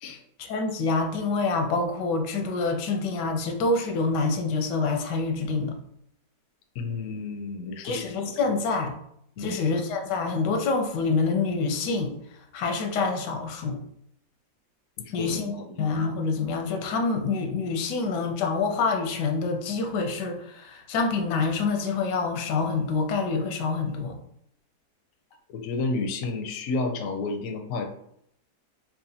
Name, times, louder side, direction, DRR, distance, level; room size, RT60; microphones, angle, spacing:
voice 1, 0.4-5.8 7.8-9.0 9.4-13.8 15.1-24.2, left 4 dB, 85° left, 4 dB, 1.3 m, -27 dB
voice 2, 6.7-8.1 9.4-9.5 15.0-15.8 25.5-27.8, left 3 dB, 70° left, 4 dB, 0.8 m, -31 dB
4.7 x 2.4 x 2.7 m, 0.71 s
omnidirectional pair, 1.8 m